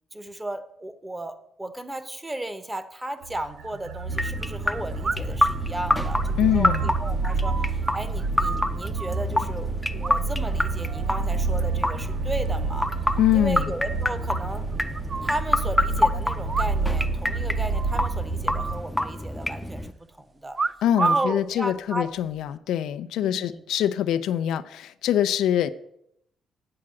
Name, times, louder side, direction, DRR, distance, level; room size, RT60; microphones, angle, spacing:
voice 1, 0.1-12.9 13.3-14.7 15.2-20.6 21.0-22.1 23.2-23.6, right 1 dB, 15° right, 11 dB, 1.0 m, -35 dB
sound 1, 3.2-3.3 5.0-5.5 5.9-9.2 10.0-10.5 10.8-11.2 11.6-12.2 12.4-12.5 12.8-12.9 13.2-13.3 13.6-13.7 14.3-15.4 16.4-17.1 17.3-17.4 17.7-18.1 18.5-19.5 20.5-21.4 22.2-22.5, right 4 dB, 35° right, 0.3 m, -31 dB
sound 2, 3.2-18.8, right 4 dB, 90° right, 0.6 m, -29 dB
sound 3, 4.1-19.9, left 1 dB, 5° left, 0.6 m, -28 dB
voice 2, 6.4-6.9 13.2-13.7 20.8-25.7, left 11 dB, 85° left, 12 dB, 0.5 m, -24 dB
8.7 x 4.7 x 7.6 m, 0.76 s
cardioid pair, 90°, 0 cm